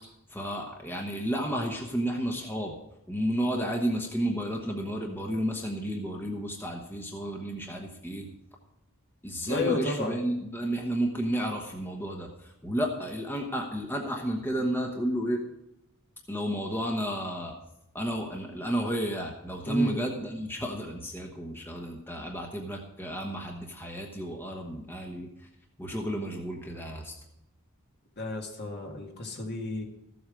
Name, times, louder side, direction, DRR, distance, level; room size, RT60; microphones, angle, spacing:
voice 1, 0.3-2.7 3.1-8.3 9.2-15.4 16.3-17.5 17.9-25.5 25.8-27.1, right 1 dB, 10° left, 1 dB, 1.1 m, -32 dB
voice 2, 9.5-10.2 19.7-20.0 28.2-29.8, left 2 dB, 50° left, 1 dB, 2.0 m, -32 dB
13.5 x 7.9 x 5.1 m, 0.88 s
head